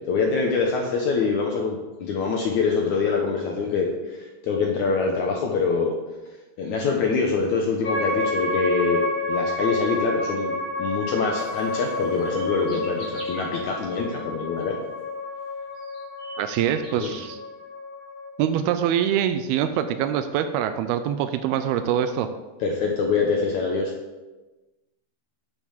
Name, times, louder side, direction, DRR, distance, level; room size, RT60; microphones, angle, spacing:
voice 1, 0.0-5.9 6.6-14.8 17.0-17.1 22.6-23.9, left 4 dB, 65° left, 0 dB, 2.0 m, -25 dB
sound 1, 7.8-18.3, left 2 dB, 40° left, 2.0 m, -29 dB
sound 2, 12.2-13.4 15.1-15.2 15.7-17.2, right 1 dB, 30° right, 3.5 m, -43 dB
voice 2, 16.4-17.4 18.4-22.3, right 9 dB, 85° right, 9 dB, 2.6 m, -24 dB
8.5 x 6.9 x 7.2 m, 1.1 s
omnidirectional pair, 4.3 m